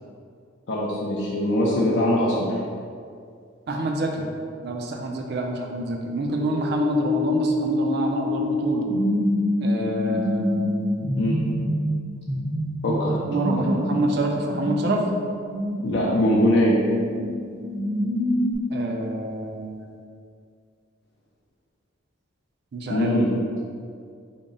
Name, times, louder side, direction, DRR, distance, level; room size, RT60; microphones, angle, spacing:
voice 1, 0.7-2.5 11.2-11.4 12.8-13.2 13.6-13.7 15.8-16.8 22.9-23.3, equal, 55° left, -5 dB, 0.4 m, -22 dB
voice 2, 3.7-4.3 4.6-8.9 9.6-11.2 13.3-15.0 18.7-20.0 22.7-23.1, right 1 dB, 50° right, 2 dB, 0.4 m, -27 dB
sound 1, 6.3-18.5, left 1 dB, 85° right, 1.3 m, -26 dB
3.6 x 2.0 x 3.8 m, 2.3 s
head